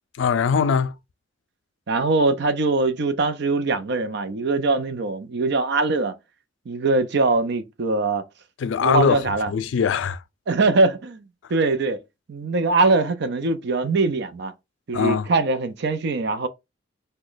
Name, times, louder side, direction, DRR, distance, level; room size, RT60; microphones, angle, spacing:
voice 1, 0.2-0.9 8.6-10.2 14.9-15.3, left 6 dB, 80° left, 0.4 m, -21 dB
voice 2, 1.9-6.1 6.7-8.2 8.8-9.5 10.5-11.2 11.5-12.0 12.3-14.5 14.9-16.5, right 3 dB, 65° right, 0.5 m, -22 dB
3.0 x 2.2 x 3.8 m
head